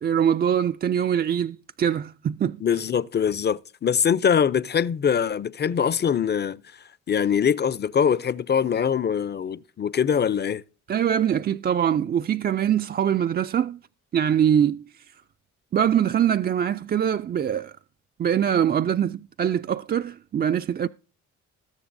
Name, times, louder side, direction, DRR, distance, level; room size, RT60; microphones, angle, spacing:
voice 1, 0.0-2.6 10.9-13.8 14.1-14.8 15.7-17.7 18.2-20.9, right 9 dB, 35° right, 0.4 m, -23 dB
voice 2, 2.6-6.6 7.1-10.6, left 7 dB, 35° left, 0.5 m, -23 dB
20.5 x 7.0 x 2.6 m
cardioid pair, 90°, 30 cm